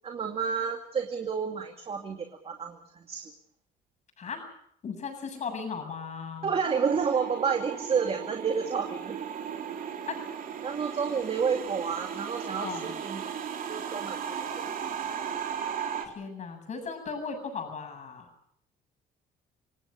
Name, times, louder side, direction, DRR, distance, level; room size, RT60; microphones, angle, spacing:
voice 1, 0.0-3.3 6.4-9.2 10.6-13.2 13.7-14.8, right 6 dB, 35° right, 4 dB, 2.5 m, -30 dB
voice 2, 4.8-6.5 10.1-10.2 12.6-12.9 16.0-18.3, left 5 dB, 45° left, 5 dB, 7.8 m, -37 dB
sound 1, 6.6-16.1, right 8 dB, 55° right, 3.6 m, -36 dB
28.5 x 18.0 x 6.6 m, 0.67 s
cardioid pair, 110°, 17 cm